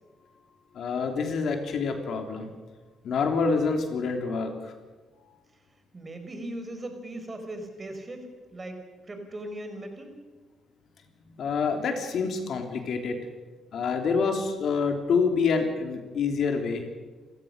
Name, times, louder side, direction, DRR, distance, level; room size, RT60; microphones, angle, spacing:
voice 1, 0.7-2.5 3.0-4.7 11.4-13.2 13.7-16.8, left 5 dB, 65° left, 4 dB, 3.2 m, -27 dB
voice 2, 5.9-8.8 9.1-10.1, right 1 dB, 25° right, 6 dB, 4.7 m, -38 dB
28.0 x 15.0 x 6.7 m, 1.3 s
cardioid pair, 90°, 0 cm